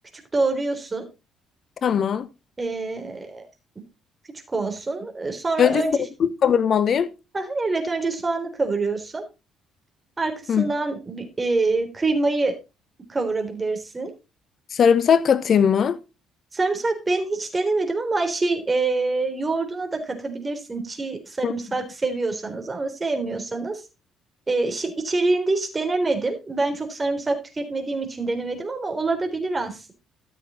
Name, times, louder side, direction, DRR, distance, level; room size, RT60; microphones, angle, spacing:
voice 1, 0.3-1.1 2.6-3.4 4.5-6.0 7.3-9.2 10.2-12.5 13.1-14.1 16.5-23.8 24.5-29.9, right 3 dB, 25° right, 3.7 m, -25 dB
voice 2, 1.8-2.3 5.6-7.1 10.5-10.7 14.7-16.0 21.4-21.5, left 7 dB, 50° left, 1.2 m, -19 dB
13.5 x 7.3 x 4.0 m
hypercardioid pair, 50°, 0 cm